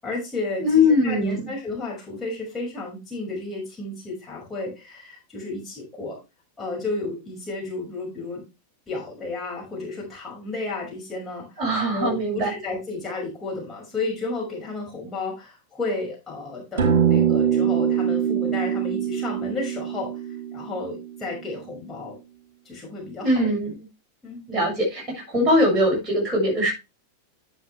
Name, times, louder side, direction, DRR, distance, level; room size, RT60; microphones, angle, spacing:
voice 1, 0.0-6.2 6.6-8.4 8.9-11.6 11.9-20.1 20.5-22.2 22.6-23.5 24.2-24.4, left 3 dB, 15° left, -3 dB, 5.8 m, -32 dB
voice 2, 0.6-1.5 11.6-12.5 23.2-23.7 24.5-26.7, left 1 dB, 20° right, -3 dB, 6.6 m, -21 dB
sound 1, 16.8-21.4, right 8 dB, 55° right, 2.7 m, -23 dB
10.0 x 7.8 x 3.3 m, 0.26 s
figure-of-eight pair, 90°, 0 cm